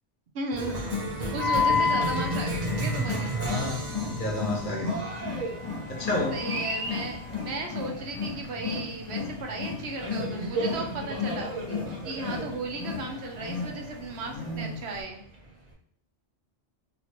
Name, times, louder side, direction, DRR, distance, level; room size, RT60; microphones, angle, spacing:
voice 1, 0.3-0.8 1.3-3.3 6.3-11.5 12.0-15.2, right 3 dB, 80° right, 2 dB, 0.9 m, -35 dB
Cheering, 0.5-15.7, right 2 dB, 40° right, 0.8 m, -36 dB
Wild animals, 0.7-15.0, left 5 dB, 35° left, 1.2 m, -35 dB
Wind instrument woodwind instrument, 1.3-7.5, left 5 dB, 5° left, 0.7 m, -32 dB
voice 2, 3.3-4.9 5.9-6.4, left 1 dB, 50° left, 0 dB, 0.9 m, -30 dB
3.0 x 2.9 x 2.8 m, 0.67 s
omnidirectional pair, 1.1 m